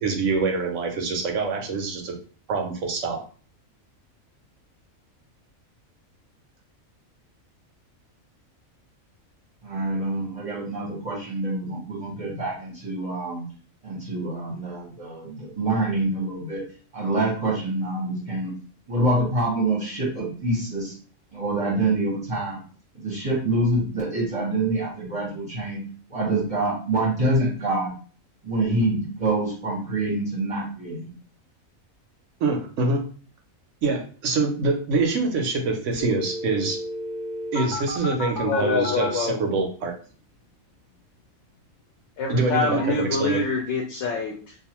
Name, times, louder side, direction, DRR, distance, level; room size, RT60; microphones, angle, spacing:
voice 1, 0.0-2.1 2.5-3.2 32.4-33.0 33.8-36.8 37.5-39.9 42.3-43.4, right 3 dB, 70° right, 3 dB, 0.9 m, -25 dB
voice 2, 9.6-13.4 13.8-16.6 16.9-18.5 18.9-20.9 21.3-22.6 22.9-25.8 26.1-27.9 28.4-31.1, right 2 dB, 30° right, -6 dB, 0.8 m, -26 dB
sound 1, 36.0-39.1 42.8-43.6, left 2 dB, 85° left, 1.0 m, -32 dB
voice 3, 38.4-39.4 42.2-44.6, left 3 dB, 65° left, 0 dB, 0.8 m, -25 dB
2.5 x 2.3 x 2.9 m, 0.40 s
omnidirectional pair, 1.4 m